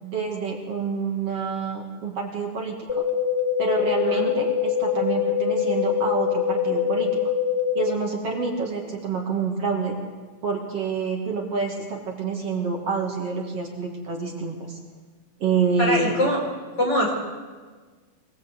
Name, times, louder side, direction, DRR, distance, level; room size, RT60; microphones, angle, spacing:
voice 1, 0.0-3.0 3.6-7.1 7.8-10.0 10.4-14.8 15.4-16.2, right 4 dB, 50° right, 0 dB, 3.5 m, -27 dB
sound 1, 2.9-7.9, left 8 dB, 15° left, 1.0 m, -24 dB
voice 2, 15.8-16.4 16.8-17.1, equal, 35° left, 0 dB, 5.5 m, -23 dB
23.5 x 20.5 x 8.4 m, 1.5 s
omnidirectional pair, 3.6 m